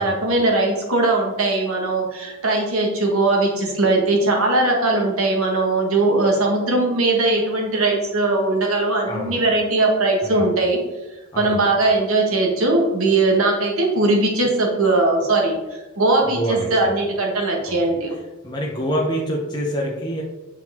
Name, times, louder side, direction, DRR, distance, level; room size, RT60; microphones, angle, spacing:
voice 1, 0.0-10.8 11.3-15.6 16.0-18.1, right 2 dB, 65° right, 1 dB, 1.5 m, -19 dB
voice 2, 9.1-9.5 10.2-10.5 11.3-11.8 16.3-17.0 17.6-17.8 18.4-20.2, equal, 20° left, -2 dB, 0.8 m, -26 dB
7.7 x 4.6 x 3.6 m, 1.1 s
head